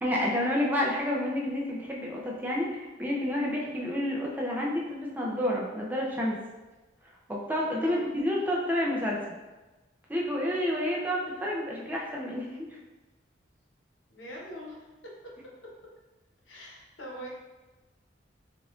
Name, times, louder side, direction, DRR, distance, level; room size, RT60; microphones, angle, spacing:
voice 1, 0.0-6.4 7.3-9.2 10.1-12.5, left 1 dB, 10° right, -3 dB, 0.5 m, -29 dB
voice 2, 14.1-14.8 16.5-17.3, equal, 80° left, -3 dB, 1.0 m, -42 dB
5.3 x 2.5 x 2.4 m, 1.2 s
head